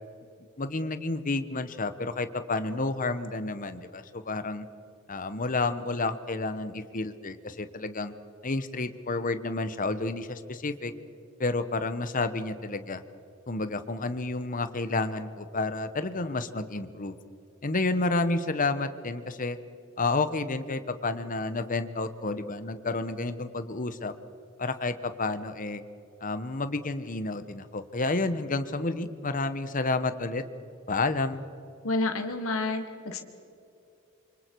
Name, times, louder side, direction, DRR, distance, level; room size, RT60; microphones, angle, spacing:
voice 1, 0.6-4.7 5.1-8.1 8.4-10.9 11.4-13.0 13.5-17.2 17.6-19.6 20.0-24.1 24.6-25.8 26.2-30.4 30.9-31.4, left 3 dB, 40° left, 11 dB, 1.1 m, -30 dB
voice 2, 31.8-33.2, left 2 dB, 75° left, 6 dB, 1.7 m, -29 dB
27.5 x 25.0 x 4.7 m, 2.7 s
head